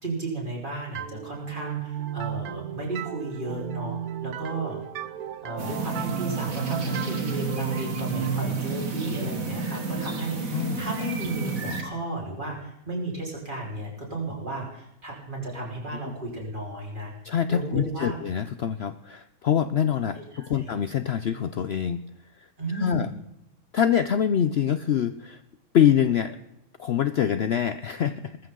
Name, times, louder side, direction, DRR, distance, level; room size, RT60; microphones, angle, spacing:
voice 1, 0.0-4.8 5.4-17.1 17.5-18.2 20.1-20.7 22.6-23.1, right 2 dB, 35° right, -2 dB, 4.5 m, -34 dB
sound 1, 1.0-10.5, right 9 dB, 85° right, 1.3 m, -34 dB
sound 2, 5.6-11.8, right 3 dB, 65° right, 2.4 m, -31 dB
voice 2, 17.2-22.0 22.4-23.1 23.7-25.4 25.7-26.4 26.8-28.4, left 9 dB, 60° left, 12 dB, 0.8 m, -25 dB
20.5 x 14.0 x 3.8 m, 0.83 s
omnidirectional pair, 1.5 m